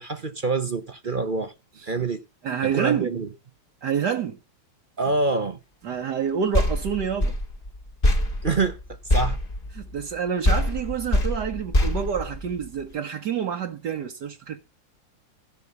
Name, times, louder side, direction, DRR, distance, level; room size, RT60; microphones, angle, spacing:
voice 1, 0.0-1.5 1.8-2.2 2.6-3.3 5.0-5.6 8.4-8.8 9.1-9.4, right 3 dB, 40° right, 0.8 m, -26 dB
voice 2, 2.4-3.1 3.8-4.4 5.8-7.4 9.7-14.6, right 7 dB, 65° right, 1.6 m, -28 dB
sound 1, 6.5-10.2 10.4-12.9, left 1 dB, 30° left, 2.3 m, -24 dB
16.0 x 5.8 x 6.9 m
omnidirectional pair, 2.0 m